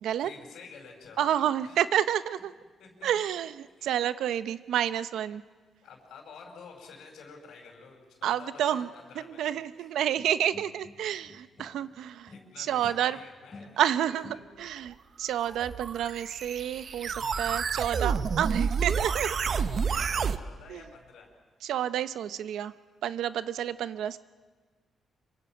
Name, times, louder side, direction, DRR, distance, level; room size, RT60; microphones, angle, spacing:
voice 1, 0.2-1.8 2.8-3.1 3.8-4.2 5.8-9.9 12.3-14.2 15.7-15.8 19.8-21.3, left 5 dB, 85° left, -1 dB, 4.8 m, -50 dB
voice 2, 1.2-2.5 3.0-5.4 8.2-8.9 9.4-12.3 12.6-13.2 13.8-19.4 19.9-20.1 20.7-20.8 21.6-22.7 23.0-24.2, right 10 dB, 85° right, 14 dB, 0.7 m, -29 dB
sound 1, 10.2-11.9 12.3-14.9, left 3 dB, 25° left, 2.4 m, -51 dB
sound 2, 15.4-20.4, right 6 dB, 45° right, 0.7 m, -29 dB
26.5 x 24.0 x 6.0 m, 1.4 s
cardioid pair, 135°, 0 cm